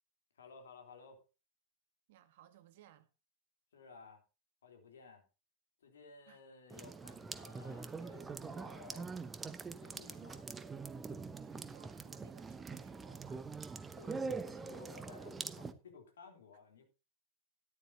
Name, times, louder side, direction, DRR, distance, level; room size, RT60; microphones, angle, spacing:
voice 1, 0.3-1.2 3.7-4.2 4.6-5.3 5.8-9.1 9.8-10.5 13.9-16.9, left 4 dB, 65° left, 3.5 m, -57 dB
voice 2, 2.1-3.1 6.3-6.4 11.3-13.5, right 11 dB, 55° right, 1.7 m, -62 dB
sound 1, 6.7-15.7, right 4 dB, 15° right, 0.9 m, -44 dB
13.5 x 11.0 x 2.8 m
figure-of-eight pair, 90°, 0 cm